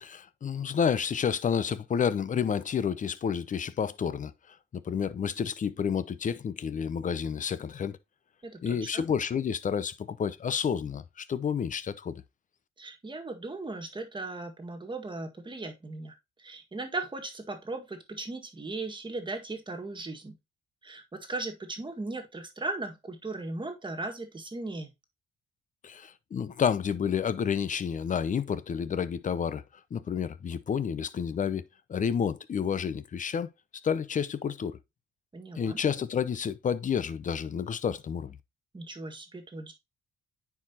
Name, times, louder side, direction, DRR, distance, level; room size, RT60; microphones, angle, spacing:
voice 1, 0.0-8.0 8.6-12.2 25.8-29.6 29.9-31.6 31.9-33.5 33.8-34.8 35.6-38.4, left 7 dB, 40° left, 0.7 m, -30 dB
voice 2, 8.4-9.0 12.8-20.4 20.8-24.9 35.3-35.8 38.7-39.7, right 2 dB, 25° right, 1.8 m, -37 dB
9.4 x 4.7 x 2.9 m
cardioid pair, 90°, 20 cm